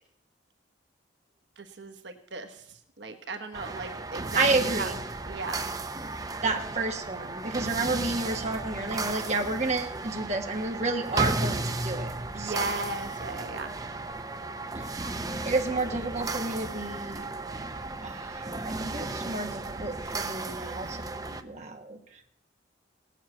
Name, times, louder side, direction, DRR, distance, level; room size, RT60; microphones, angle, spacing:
voice 1, 1.6-4.9 5.3-5.7 12.3-13.8, right 3 dB, 70° right, 6 dB, 1.3 m, -36 dB
sound 1, 3.5-21.4, right 3 dB, 20° right, 0.6 m, -34 dB
voice 2, 4.3-5.0 6.4-12.7 14.7-14.9 15.4-17.3 18.0-22.0, right 3 dB, 35° right, 3 dB, 1.4 m, -31 dB
17.5 x 7.4 x 8.5 m, 0.74 s
head